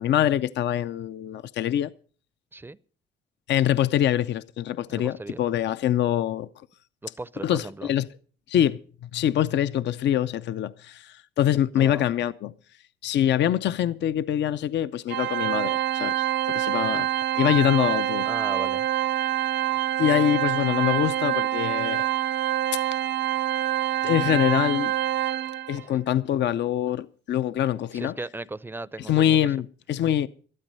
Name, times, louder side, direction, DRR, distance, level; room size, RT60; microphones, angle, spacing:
voice 1, 0.0-1.9 3.5-6.5 7.4-8.1 8.5-12.5 13.0-17.1 17.3-18.3 20.0-22.1 22.7-22.8 24.0-24.9 25.7-28.1 29.0-30.3, left 11 dB, 65° left, 0.5 m, -24 dB
voice 2, 4.9-5.4 7.0-7.9 11.8-12.1 18.3-18.9 25.9-26.0 27.9-29.4, right 2 dB, 10° right, 0.5 m, -36 dB
Organ, 15.1-25.8, right 12 dB, 60° right, 0.5 m, -26 dB
13.0 x 12.0 x 5.4 m
cardioid pair, 90°, 20 cm